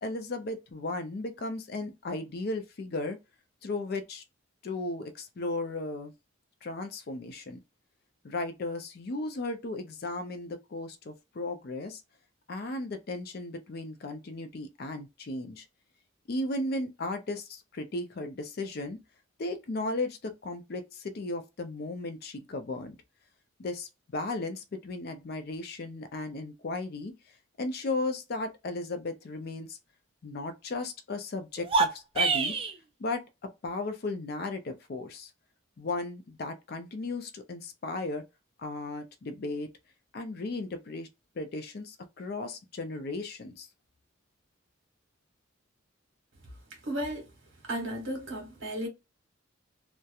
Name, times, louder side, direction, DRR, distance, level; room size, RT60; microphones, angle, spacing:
voice 1, 0.0-3.2 3.6-4.2 4.6-6.1 6.6-7.6 8.2-12.0 12.5-15.7 16.3-19.0 19.4-23.0 23.6-27.1 27.6-29.8 30.2-32.6 33.0-33.2 33.6-35.3 35.8-38.2 38.6-39.7 40.1-41.1 41.4-43.7, left 2 dB, 50° left, 0.4 m, -35 dB
sound 1, 31.6-32.8, right 4 dB, 25° right, 0.3 m, -26 dB
voice 2, 46.8-47.3 47.6-48.9, right 1 dB, 60° right, 1.3 m, -34 dB
2.8 x 2.1 x 2.3 m
head